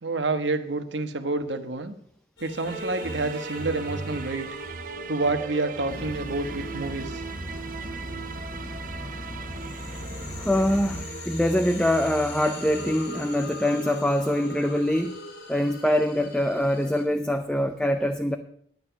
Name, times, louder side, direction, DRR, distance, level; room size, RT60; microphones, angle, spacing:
voice 1, 0.0-1.9 2.4-4.5 5.1-7.2, right 3 dB, 90° right, 1.2 m, -28 dB
sound 1, 2.4-8.7 9.2-17.0, left 1 dB, 90° left, 3.3 m, -41 dB
sound 2, 2.7-14.0, right 4 dB, 50° right, 0.7 m, -38 dB
sound 3, 5.9-11.0, left 1 dB, 20° left, 1.0 m, -38 dB
voice 2, 10.4-15.2 15.5-18.4, left 1 dB, 5° left, 0.5 m, -24 dB
11.0 x 9.3 x 5.8 m
head